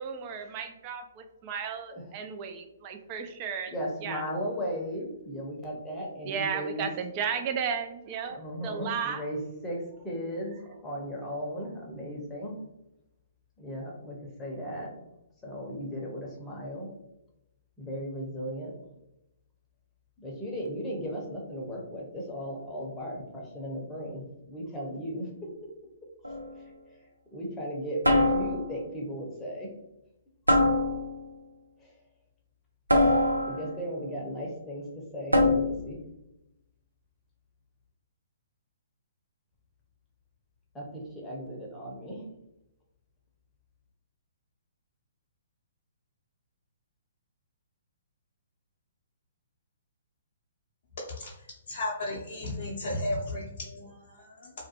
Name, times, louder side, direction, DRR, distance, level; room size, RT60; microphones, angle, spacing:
voice 1, 0.0-3.7 4.0-4.3 6.2-9.3, right 7 dB, 35° right, 6 dB, 0.3 m, -34 dB
voice 2, 3.7-6.9 8.3-9.4 9.6-10.5 10.8-12.5 13.6-14.9 15.4-16.9 17.8-18.7 20.2-25.5 26.6-26.7 27.3-29.7 31.8-31.9 33.5-34.8 35.1-36.0 40.7-42.2, equal, 10° left, -3 dB, 0.7 m, -36 dB
sound 1, 26.2-26.6 28.0-28.8 30.5-31.3 32.9-33.8 35.3-35.9, left 1 dB, 90° right, 0.5 m, -24 dB
voice 3, 51.7-54.5, left 1 dB, 45° left, -5 dB, 0.5 m, -34 dB
2.4 x 2.1 x 2.8 m, 0.86 s
figure-of-eight pair, 125°, 0 cm